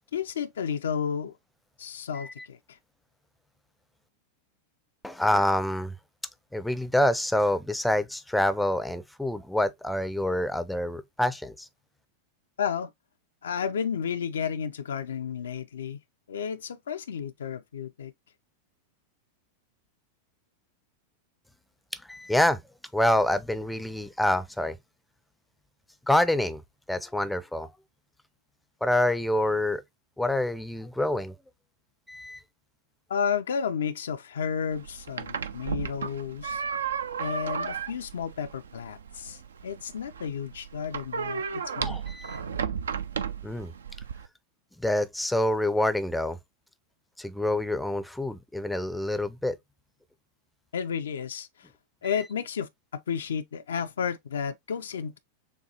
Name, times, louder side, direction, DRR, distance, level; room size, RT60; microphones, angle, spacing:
voice 1, 0.1-1.3 1.8-2.8 12.6-12.9 13.4-16.0 16.3-18.1 33.1-36.6 37.2-42.0 50.7-51.7 52.0-55.2, left 7 dB, 65° left, 0.4 m, -32 dB
voice 2, 5.0-6.0 6.5-11.7 21.9-22.6 22.9-24.8 26.1-26.6 26.9-27.7 28.8-29.8 30.2-31.3 32.1-32.4 41.8-42.4 43.4-43.7 44.8-46.4 47.2-49.6, left 1 dB, 5° left, 0.5 m, -26 dB
sound 1, 34.7-44.3, right 6 dB, 70° right, 0.4 m, -34 dB
6.5 x 2.3 x 2.8 m
figure-of-eight pair, 90°, 0 cm